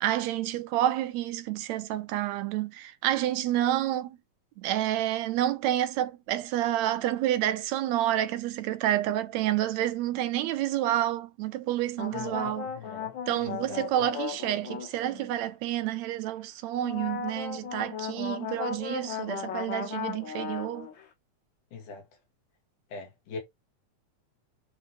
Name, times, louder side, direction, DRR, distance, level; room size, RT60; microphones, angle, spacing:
voice 1, 0.0-4.2 4.6-12.7 13.3-20.9, right 13 dB, 75° right, 1.9 m, -29 dB
sound 1, 12.0-15.4 16.8-21.0, left 7 dB, 55° left, 1.5 m, -36 dB
voice 2, 12.1-13.8 21.7-22.0 22.9-23.4, left 4 dB, 85° left, 3.7 m, -42 dB
9.6 x 3.7 x 3.2 m
omnidirectional pair, 3.5 m